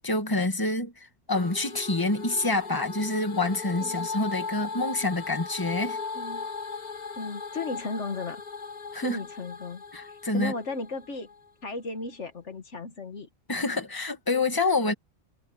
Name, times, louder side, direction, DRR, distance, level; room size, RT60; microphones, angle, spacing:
voice 1, 0.0-6.0 8.9-9.2 9.9-10.5 13.5-14.9, left 2 dB, 15° left, 2.0 m, -27 dB
sound 1, 1.3-11.5, left 4 dB, 35° left, 1.3 m, -38 dB
voice 2, 6.1-6.5 7.2-8.4 9.0-11.3 11.6-13.3, left 3 dB, 70° left, 1.9 m, -35 dB
omnidirectional pair, 1.3 m